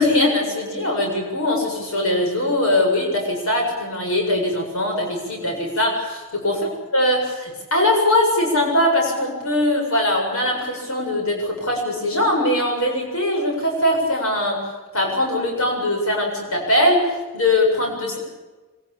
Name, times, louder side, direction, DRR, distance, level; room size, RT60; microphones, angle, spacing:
voice 1, 0.0-14.6 14.9-18.2, left 1 dB, 90° left, 1 dB, 7.6 m, -21 dB
25.5 x 18.5 x 8.7 m, 1.2 s
head